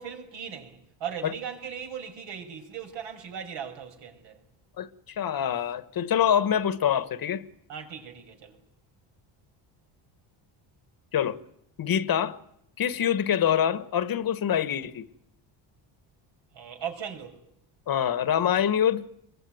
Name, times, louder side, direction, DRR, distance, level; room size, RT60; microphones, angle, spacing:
voice 1, 0.0-4.4 7.7-8.6 16.5-17.4, right 8 dB, 70° right, 6.1 m, -38 dB
voice 2, 4.8-7.4 11.1-11.4 11.8-12.4 12.8-15.1 17.9-19.0, left 9 dB, 45° left, 1.4 m, -25 dB
24.5 x 23.0 x 9.3 m
cardioid pair, 105°, 46 cm